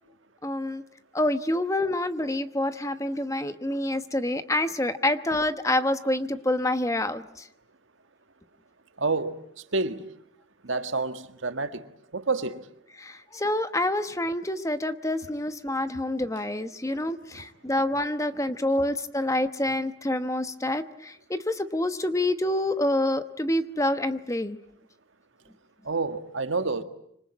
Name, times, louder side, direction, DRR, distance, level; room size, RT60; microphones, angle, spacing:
voice 1, 0.4-0.8 1.1-7.2 13.0-24.6, left 1 dB, 15° left, 1.1 m, -27 dB
voice 2, 9.0-9.4 9.7-10.1 10.6-12.7 17.3-17.5 25.8-26.8, right 3 dB, 80° right, 1.7 m, -29 dB
26.0 x 25.5 x 8.6 m
head